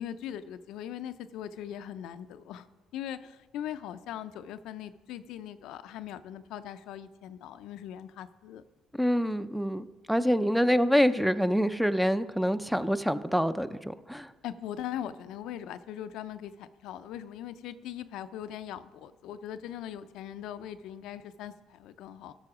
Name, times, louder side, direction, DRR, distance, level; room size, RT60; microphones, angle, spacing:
voice 1, 0.0-2.7 2.9-8.6 14.4-22.3, left 10 dB, 80° left, 11 dB, 0.4 m, -40 dB
voice 2, 9.0-14.3, equal, ahead, 12 dB, 0.5 m, -26 dB
13.0 x 6.1 x 4.9 m, 1.2 s
supercardioid pair, 70°, 0 cm